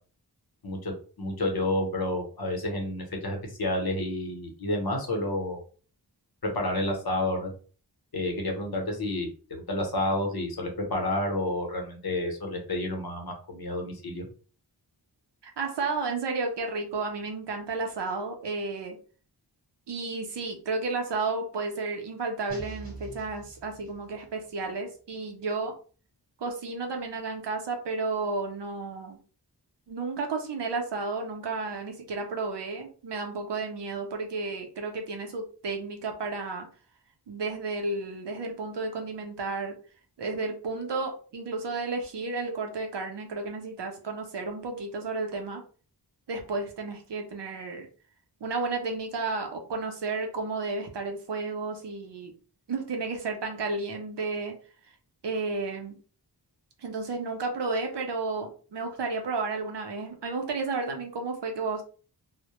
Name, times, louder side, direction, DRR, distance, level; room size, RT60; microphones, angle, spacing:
voice 1, 1.2-5.6 6.4-7.5 8.1-14.3, left 1 dB, 60° left, 2 dB, 0.8 m, -30 dB
voice 2, 15.6-19.0 19.9-25.8 26.4-29.2 29.9-36.7 37.3-39.8 40.2-45.6 46.3-47.9 48.4-52.3 52.7-54.6 55.2-56.0 56.8-61.8, right 3 dB, 85° right, 3 dB, 0.7 m, -32 dB
sound 1, 22.5-24.4, right 2 dB, 20° right, 1.0 m, -44 dB
2.1 x 2.0 x 2.9 m, 0.39 s
wide cardioid pair, 85°, 41 cm